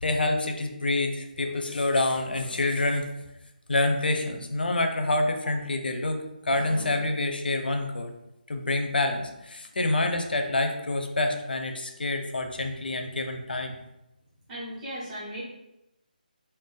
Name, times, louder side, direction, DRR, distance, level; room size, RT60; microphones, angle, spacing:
voice 1, 0.0-3.1 3.7-8.1 8.5-13.8, left 2 dB, 85° left, 5 dB, 0.5 m, -27 dB
voice 2, 14.5-15.4, equal, 5° right, -11 dB, 0.5 m, -36 dB
2.5 x 2.2 x 3.7 m, 0.92 s
hypercardioid pair, 180°, 5 cm